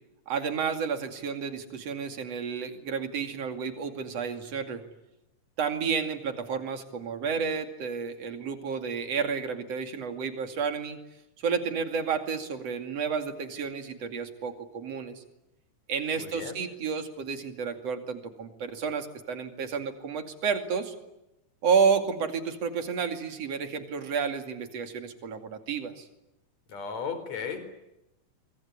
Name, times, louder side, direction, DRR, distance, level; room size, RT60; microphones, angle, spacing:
voice 1, 0.3-4.8 5.6-11.0 11.4-15.2 15.9-21.0 21.6-26.1, right 6 dB, 55° right, 7 dB, 3.5 m, -31 dB
voice 2, 16.2-16.6 26.7-27.6, left 6 dB, 60° left, 10 dB, 5.4 m, -35 dB
25.0 x 24.5 x 9.6 m, 0.92 s
omnidirectional pair, 3.4 m